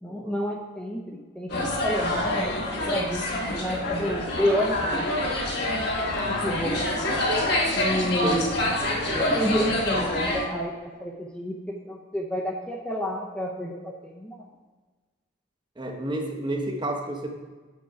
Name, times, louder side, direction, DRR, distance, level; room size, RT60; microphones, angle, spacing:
voice 1, 0.0-5.1 6.3-6.9 7.8-14.4, equal, 5° left, -1 dB, 0.6 m, -30 dB
sound 1, 1.5-10.5, left 1 dB, 55° left, 1.3 m, -26 dB
voice 2, 8.2-8.6 15.8-17.3, right 1 dB, 25° right, 2 dB, 0.8 m, -30 dB
6.9 x 6.3 x 4.8 m, 1.3 s
head